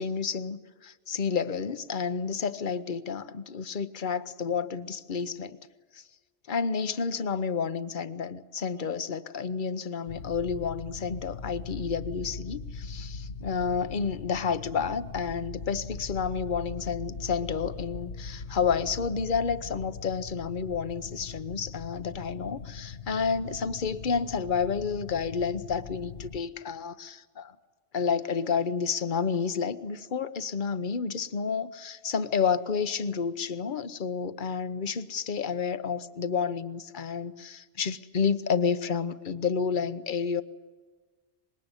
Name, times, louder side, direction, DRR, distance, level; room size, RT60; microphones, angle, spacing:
voice 1, 0.0-5.6 5.9-6.0 6.5-27.5 27.9-40.4, left 6 dB, 45° left, 12 dB, 1.0 m, -30 dB
sound 1, 10.1-26.4, left 4 dB, 70° left, 1.2 m, -41 dB
25.0 x 21.5 x 9.9 m, 1.4 s
omnidirectional pair, 1.2 m